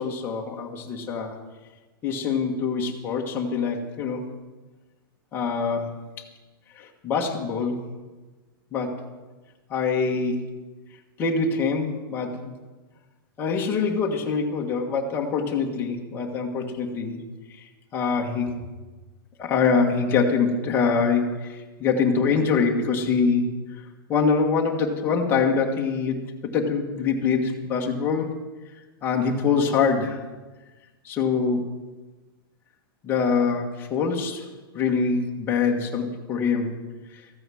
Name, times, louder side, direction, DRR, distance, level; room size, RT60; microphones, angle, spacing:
voice 1, 0.0-1.4 2.0-4.3 5.3-5.9 6.2-6.3 6.7-7.8 8.7-9.0 9.7-10.5 11.2-12.5 13.4-17.2 17.5-18.5 19.4-23.8 24.1-26.3 26.5-28.3 29.0-30.2 31.0-31.7 33.0-34.5 34.7-36.8 37.1-37.2, left 5 dB, 15° left, 0 dB, 1.5 m, -24 dB
14.0 x 9.2 x 7.7 m, 1.2 s
supercardioid pair, 170°, 13 cm